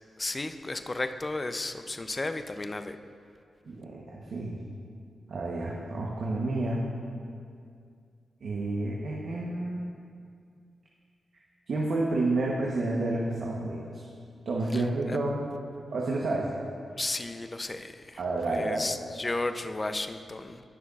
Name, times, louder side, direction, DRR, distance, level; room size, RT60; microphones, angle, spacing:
voice 1, 0.2-3.0 14.7-14.8 15.1-15.2 17.0-18.2 18.5-20.6, left 2 dB, 30° left, 9 dB, 0.5 m, -33 dB
voice 2, 3.7-4.6 5.3-6.8 8.4-9.8 11.7-14.0 14.5-15.5 15.9-16.5 18.2-18.9, right 2 dB, 75° right, -3 dB, 1.0 m, -30 dB
17.5 x 6.3 x 2.4 m, 2.3 s
cardioid pair, 55°, 0 cm